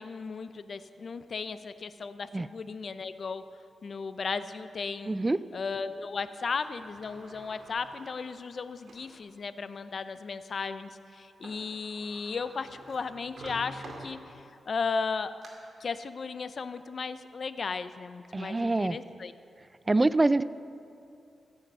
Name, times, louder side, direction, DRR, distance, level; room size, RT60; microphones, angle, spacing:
voice 1, 0.0-3.4 3.8-5.2 5.5-14.2 14.7-15.3 15.8-19.3, left 5 dB, 55° left, 12 dB, 0.5 m, -35 dB
voice 2, 5.1-5.4 18.3-19.0 19.9-20.4, right 2 dB, 20° right, 16 dB, 0.3 m, -25 dB
Sliding door, 6.6-9.2 9.8-9.9 11.2-11.3 11.4-14.6 15.1-15.5, right 1 dB, 60° right, 2.3 m, -49 dB
15.5 x 7.9 x 5.4 m, 2.5 s
cardioid pair, 90°, 0 cm